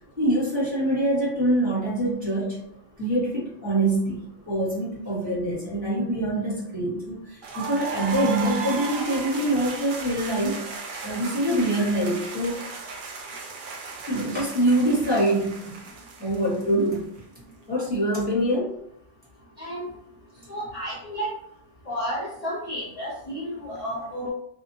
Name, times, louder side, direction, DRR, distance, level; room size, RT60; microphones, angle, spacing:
voice 1, 0.2-2.7 3.0-10.6 11.0-12.6 14.1-15.8 16.2-17.1 17.7-18.8, right 1 dB, 5° right, -8 dB, 1.1 m, -25 dB
sound 1, 7.4-17.2, right 4 dB, 60° right, 0.5 m, -36 dB
voice 2, 19.6-19.9 20.5-21.3 21.9-24.3, equal, 40° left, -5 dB, 0.6 m, -32 dB
2.7 x 2.1 x 2.7 m, 0.70 s
omnidirectional pair, 1.3 m